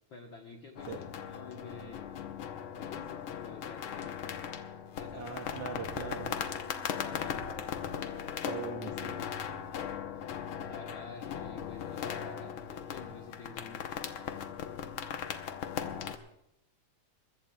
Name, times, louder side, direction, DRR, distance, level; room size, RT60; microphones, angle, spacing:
voice 1, 0.1-2.1 2.8-4.2 5.0-5.4 5.7-5.8 6.9-7.9 9.1-9.3 10.7-14.0, left 4 dB, 60° left, 2 dB, 1.3 m, -49 dB
sound 1, 0.8-16.2, left 8 dB, 85° left, 1.1 m, -38 dB
voice 2, 5.1-6.4 8.5-9.2, right 6 dB, 70° right, 3 dB, 1.4 m, -40 dB
sound 2, 5.7-11.8, right 4 dB, 85° right, 3.2 m, -54 dB
22.0 x 21.5 x 2.3 m, 0.84 s
omnidirectional pair, 3.7 m